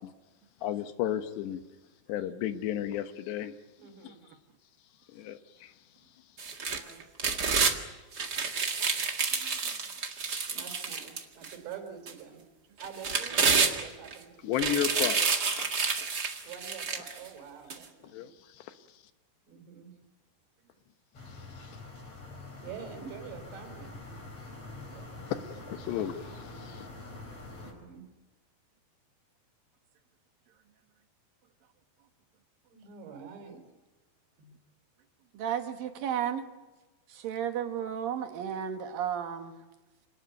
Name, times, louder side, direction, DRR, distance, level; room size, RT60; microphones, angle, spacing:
voice 1, 0.6-1.6 2.1-3.5 4.0-4.1 5.1-5.7 14.4-15.2 15.5-16.0 18.0-18.3 18.6-18.7 25.3-26.9, left 11 dB, 80° left, 9 dB, 3.3 m, -33 dB
voice 2, 3.8-4.2 6.7-7.0 10.5-12.4 12.8-14.8 16.4-18.2 19.5-19.9 22.6-24.0 24.9-25.2 27.6-28.1 32.7-33.6 34.4-34.5, right 7 dB, 85° right, 6 dB, 5.9 m, -46 dB
sound 1, 6.4-7.8 8.1-11.5 12.1-12.2 12.8-14.1 14.5-17.2 17.7-17.8, right 5 dB, 45° right, 1.3 m, -29 dB
sound 2, 21.1-27.7, left 2 dB, 35° left, 5.7 m, -45 dB
voice 3, 35.3-36.4 37.1-39.6, right 9 dB, 65° right, 6 dB, 3.0 m, -33 dB
27.0 x 18.5 x 9.3 m, 1.1 s
omnidirectional pair, 5.0 m